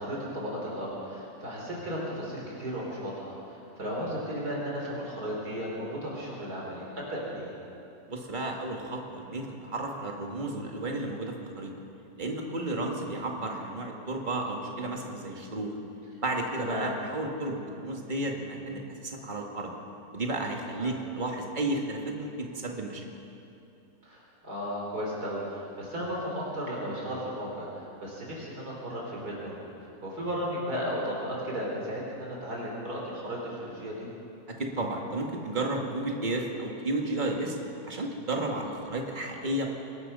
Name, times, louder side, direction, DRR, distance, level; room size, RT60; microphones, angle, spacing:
voice 1, 0.0-7.5 16.7-16.9 20.8-20.9 24.0-29.5 29.8-34.1, equal, 80° right, -3 dB, 4.3 m, -35 dB
voice 2, 8.1-11.7 12.2-15.8 16.2-19.7 20.1-23.1 34.5-37.6 37.9-39.7, right 2 dB, 30° right, 0 dB, 2.2 m, -32 dB
24.5 x 20.5 x 5.6 m, 2.8 s
omnidirectional pair, 1.7 m